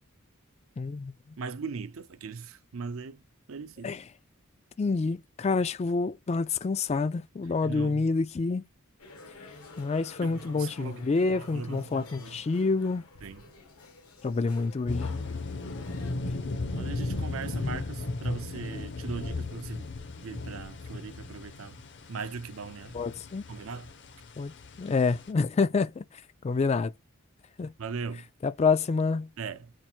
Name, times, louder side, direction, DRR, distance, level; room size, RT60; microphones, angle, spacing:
voice 1, 0.8-1.1 3.8-4.0 4.8-8.7 9.8-13.0 14.2-15.1 17.7-17.8 22.9-23.4 24.4-24.5 24.8-26.0 26.4-26.9 27.6-27.7 28.4-29.3, left 4 dB, 30° left, 0.3 m, -27 dB
voice 2, 1.4-3.2 3.5-3.9 7.6-8.1 10.2-11.1 11.4-12.4 13.2-13.4 16.7-19.9 20.2-21.8 22.1-23.0 23.5-23.9 27.8-28.3 29.4-29.7, right 5 dB, 70° right, 0.6 m, -39 dB
sound 1, 9.0-16.1, left 3 dB, 85° left, 1.3 m, -50 dB
sound 2, 14.9-25.3, left 2 dB, 55° left, 0.7 m, -36 dB
4.5 x 2.5 x 4.3 m
head